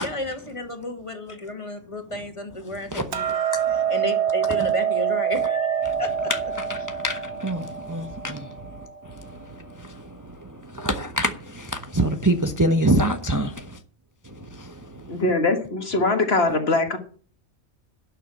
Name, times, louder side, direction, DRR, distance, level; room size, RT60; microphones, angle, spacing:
voice 1, 0.0-3.4 3.9-6.3, left 1 dB, 25° left, 2.1 m, -32 dB
Hammer, 3.1-9.4, right 8 dB, 70° right, 1.4 m, -26 dB
voice 2, 10.8-11.3 12.0-13.5, right 1 dB, 20° right, 0.9 m, -21 dB
voice 3, 15.1-17.0, left 2 dB, 60° left, 1.8 m, -22 dB
11.5 x 6.6 x 8.6 m
omnidirectional pair, 1.2 m